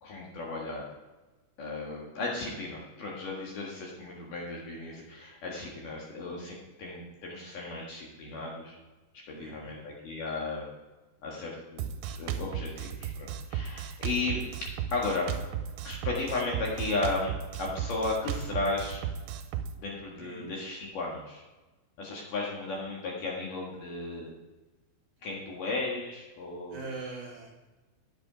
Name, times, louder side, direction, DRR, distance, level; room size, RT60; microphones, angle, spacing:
voice 1, 0.0-0.8 1.6-8.8 9.4-10.6 11.2-14.4 14.9-15.3 15.8-19.0 19.8-21.4 22.0-24.3 25.2-26.9, left 3 dB, 55° left, -3 dB, 2.8 m, -35 dB
voice 2, 9.3-9.8 20.2-20.5 26.7-27.5, right 4 dB, 55° right, -1 dB, 3.1 m, -41 dB
Drum kit, 11.8-19.7, right 8 dB, 85° right, 2.9 m, -35 dB
10.5 x 8.3 x 4.9 m, 1.1 s
omnidirectional pair, 5.1 m